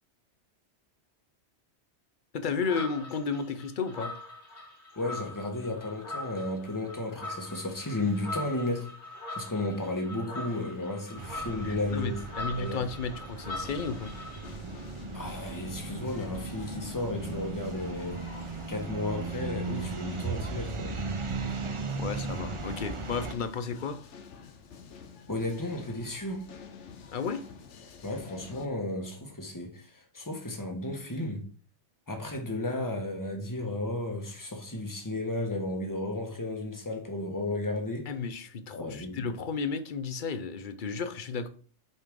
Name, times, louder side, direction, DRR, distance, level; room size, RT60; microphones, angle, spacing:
voice 1, 2.3-4.1 11.6-14.1 21.9-24.0 27.1-27.4 38.1-41.5, left 5 dB, 50° left, 0.8 m, -33 dB
sound 1, 2.6-14.5, left 2 dB, 70° left, 2.1 m, -42 dB
voice 2, 5.0-8.9 9.3-12.2 12.6-12.8 15.1-18.2 18.7-21.0 25.3-26.5 28.0-31.4 32.1-38.1 38.8-39.2, left 2 dB, 15° left, 1.3 m, -33 dB
sound 2, 11.2-23.3, right 4 dB, 35° right, 0.6 m, -37 dB
sound 3, 13.5-28.7, left 6 dB, 85° left, 1.2 m, -49 dB
8.0 x 5.6 x 3.7 m
omnidirectional pair, 1.2 m